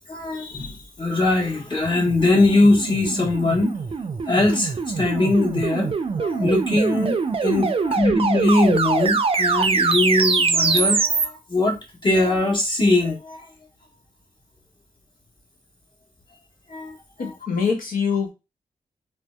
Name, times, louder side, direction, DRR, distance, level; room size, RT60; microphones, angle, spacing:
voice 1, 0.1-3.8 4.3-13.5 16.7-17.3, left 2 dB, 35° left, -1 dB, 1.2 m, -21 dB
sound 1, 1.8-11.2, right 4 dB, 40° right, 0.4 m, -23 dB
voice 2, 17.2-18.3, left 6 dB, 85° left, 3 dB, 0.7 m, -24 dB
2.6 x 2.1 x 2.3 m, 0.26 s
cardioid pair, 45°, 14 cm